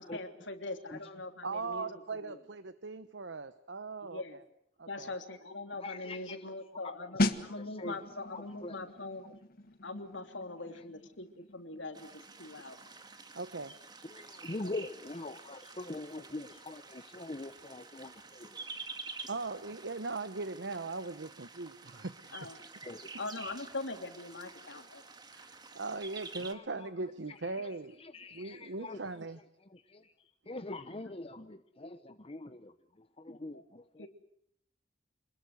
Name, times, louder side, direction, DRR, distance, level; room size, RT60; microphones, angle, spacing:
voice 1, 0.0-1.9 2.2-2.4 4.1-4.4 4.9-9.3 9.8-12.8 22.3-22.6 23.2-25.0 34.0-34.1, left 2 dB, 80° left, 5 dB, 3.2 m, -42 dB
voice 2, 1.4-4.4 4.8-5.1 13.3-13.7 19.3-22.7 25.3-28.0 28.3-29.4, right 3 dB, 70° right, 12 dB, 1.0 m, -40 dB
voice 3, 5.8-8.0 8.3-8.8 10.7-10.8 14.0-18.7 22.8-23.2 26.4-26.9 27.3-29.1 29.6-30.1 30.5-34.1, left 2 dB, 30° left, 9 dB, 1.0 m, -44 dB
sound 1, 7.2-17.7 18.0-18.2, left 1 dB, 50° left, 1.6 m, -40 dB
sound 2, 11.9-26.5, right 4 dB, 25° right, 2.1 m, -49 dB
27.5 x 21.0 x 8.0 m, 0.71 s
head